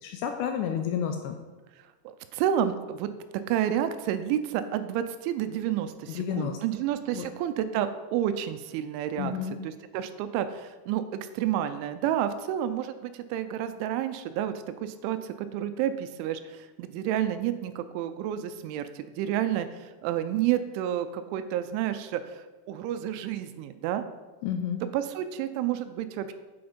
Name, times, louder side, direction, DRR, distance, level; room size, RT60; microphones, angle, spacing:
voice 1, 0.0-1.4 6.1-6.6 7.1-7.3 9.2-9.6 24.4-24.8, left 8 dB, 85° left, 5 dB, 2.4 m, -30 dB
voice 2, 2.1-3.1 3.5-9.3 9.6-14.5 14.8-24.1 24.9-26.3, right 10 dB, 85° right, 10 dB, 3.0 m, -30 dB
7.9 x 7.7 x 5.2 m, 1.3 s
omnidirectional pair, 5.5 m